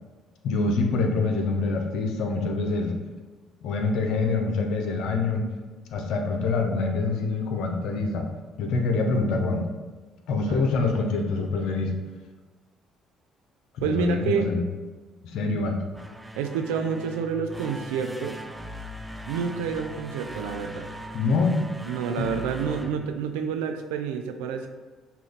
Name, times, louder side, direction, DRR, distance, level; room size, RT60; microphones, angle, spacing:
voice 1, 0.4-2.9 3.6-5.4 5.9-8.3 8.6-9.7 10.3-11.9 13.7-14.6 15.2-15.8 21.1-21.6 22.2-22.3, left 3 dB, 75° left, 3 dB, 0.6 m, -25 dB
voice 2, 13.8-14.5 16.3-18.6 19.3-20.9 21.9-24.7, right 6 dB, 90° right, 7 dB, 0.4 m, -29 dB
sound 1, 15.8-23.8, equal, 10° right, 0.4 m, -40 dB
5.8 x 2.3 x 3.4 m, 1.3 s
supercardioid pair, 70°, 0 cm